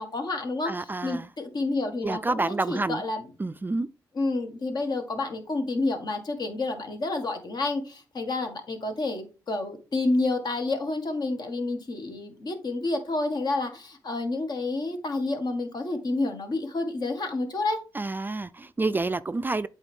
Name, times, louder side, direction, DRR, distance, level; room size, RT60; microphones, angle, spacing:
voice 1, 0.0-3.2 4.1-17.8, left 2 dB, 60° left, 1.6 m, -29 dB
voice 2, 0.6-1.3 2.0-3.0 3.4-3.9 17.9-19.7, right 3 dB, 25° right, 0.4 m, -28 dB
8.1 x 4.1 x 3.5 m
cardioid pair, 60°, 8 cm